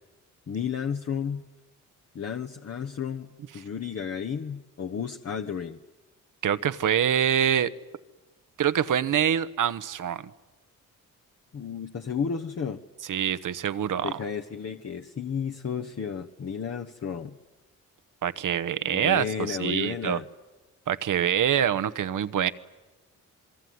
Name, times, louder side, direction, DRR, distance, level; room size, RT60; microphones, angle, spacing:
voice 1, 0.5-1.4 2.1-5.8 11.5-12.8 14.0-17.4 18.9-20.3, left 7 dB, 45° left, 4 dB, 1.2 m, -32 dB
voice 2, 6.4-7.7 8.6-10.3 13.1-14.2 18.2-20.2 20.9-22.5, right 9 dB, 65° right, 14 dB, 1.1 m, -25 dB
27.5 x 22.5 x 9.5 m, 1.1 s
cardioid pair, 65°, 34 cm